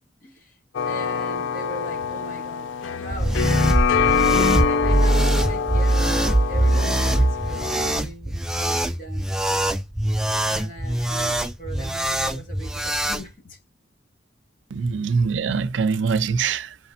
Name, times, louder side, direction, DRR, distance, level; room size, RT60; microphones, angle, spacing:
voice 1, 0.2-0.6 0.8-9.8 10.5-13.6 14.8-14.9, right 1 dB, 45° left, 1.7 m, -40 dB
sound 1, 0.7-8.0, left 6 dB, 90° left, 0.4 m, -25 dB
sound 2, 3.1-13.2, right 1 dB, 5° right, 0.4 m, -22 dB
voice 2, 14.7-16.8, right 5 dB, 90° right, 0.5 m, -23 dB
5.0 x 3.2 x 2.7 m
head